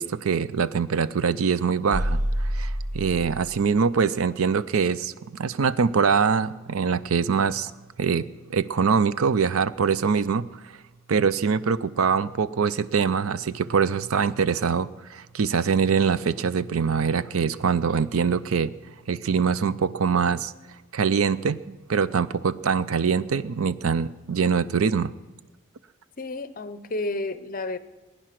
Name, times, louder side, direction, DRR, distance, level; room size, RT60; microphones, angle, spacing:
voice 1, 0.0-7.7 8.0-10.5 11.1-18.7 19.1-20.5 20.9-25.1, right 6 dB, 85° right, 16 dB, 0.5 m, -24 dB
sound 1, 1.9-3.7, equal, 35° right, 0.6 m, -27 dB
voice 2, 26.2-27.8, left 2 dB, 40° left, 13 dB, 0.7 m, -31 dB
20.0 x 10.0 x 6.0 m, 1.2 s
head